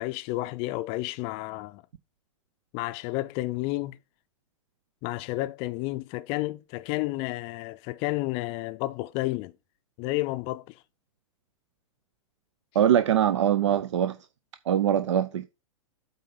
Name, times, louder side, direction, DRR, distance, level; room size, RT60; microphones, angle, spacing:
voice 1, 0.0-1.8 2.7-4.0 5.0-9.5 10.0-10.8, left 19 dB, 35° left, 0.5 m, -31 dB
voice 2, 12.7-14.2 14.7-15.5, right 10 dB, 60° right, 0.6 m, -22 dB
8.3 x 3.9 x 5.4 m
figure-of-eight pair, 100°, 17 cm